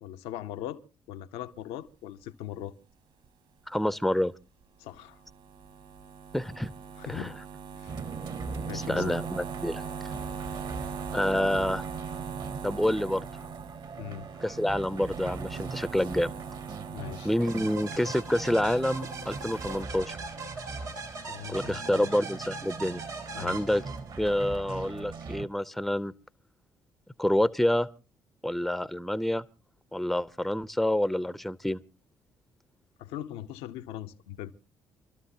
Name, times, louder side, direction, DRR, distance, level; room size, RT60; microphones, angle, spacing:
voice 1, 0.0-0.8 1.1-2.7 4.8-5.2 7.0-7.3 7.7-8.0 8.7-9.2 14.0-14.3 16.9-17.3 21.3-22.1 23.3-23.6 33.0-34.5, left 11 dB, 70° left, 0.8 m, -40 dB
voice 2, 3.7-4.3 6.3-6.7 7.1-7.3 8.7-10.1 11.1-11.8 12.6-13.3 14.4-16.3 17.2-20.1 21.5-23.0 23.3-23.8 24.2-26.1 27.2-27.9 28.4-29.4 29.9-31.8, left 1 dB, ahead, 0.6 m, -28 dB
sound 1, 5.0-19.8, right 6 dB, 65° right, 2.3 m, -41 dB
sound 2, 7.9-25.5, right 4 dB, 45° right, 1.2 m, -41 dB
sound 3, 17.5-24.3, right 3 dB, 85° right, 2.3 m, -40 dB
27.5 x 13.0 x 2.8 m
hypercardioid pair, 50°, 10 cm